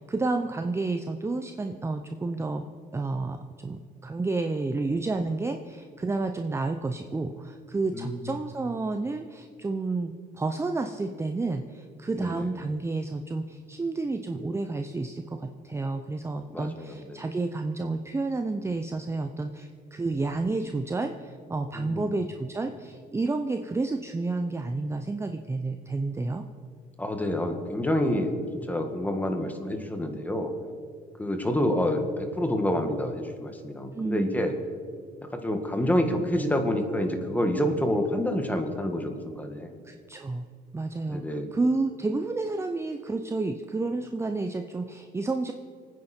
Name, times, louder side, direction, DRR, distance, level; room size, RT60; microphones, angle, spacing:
voice 1, 0.0-2.7 2.9-26.4 33.9-34.4 39.8-40.5 40.7-45.5, right 3 dB, 15° right, 6 dB, 0.7 m, -30 dB
voice 2, 7.9-8.3 12.2-12.4 16.5-17.2 21.7-22.1 27.0-28.3 28.7-30.5 31.2-34.5 35.3-39.7 41.1-41.5, left 1 dB, 10° left, 5 dB, 1.8 m, -28 dB
24.5 x 9.7 x 4.5 m, 2.2 s
cardioid pair, 110°, 17 cm